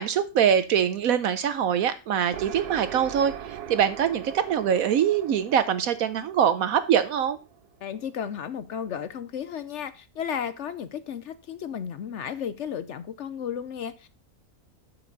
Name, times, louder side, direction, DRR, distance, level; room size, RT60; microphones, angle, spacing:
voice 1, 0.0-7.4, right 8 dB, 70° right, 12 dB, 1.0 m, -23 dB
sound 1, 2.3-7.9, right 10 dB, 85° right, 1.3 m, -41 dB
voice 2, 7.8-14.1, left 8 dB, 60° left, 13 dB, 0.8 m, -34 dB
12.5 x 6.0 x 3.9 m, 0.30 s
omnidirectional pair, 1.6 m